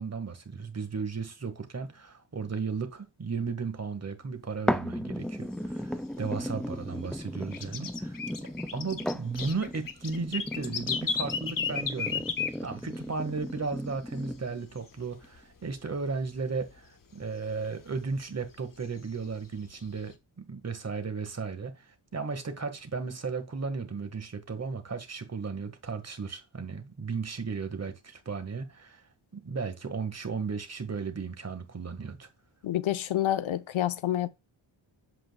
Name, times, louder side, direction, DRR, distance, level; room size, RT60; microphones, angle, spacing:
voice 1, 0.0-8.2 8.7-12.2 12.6-20.2 20.5-29.0 29.3-32.3, right 4 dB, 35° right, 1.6 m, -35 dB
sound 1, 4.7-14.7 15.2-15.3, equal, ahead, 0.4 m, -36 dB
sound 2, 5.3-6.7 7.1-13.2 13.5-13.6 13.9-14.4 14.7-15.9 16.2-16.3 16.6-16.7 17.2-18.3 18.8-20.1, left 6 dB, 45° left, 1.2 m, -34 dB
voice 2, 32.6-34.3, left 12 dB, 80° left, 0.8 m, -28 dB
8.3 x 7.3 x 2.3 m
wide cardioid pair, 135°, 47 cm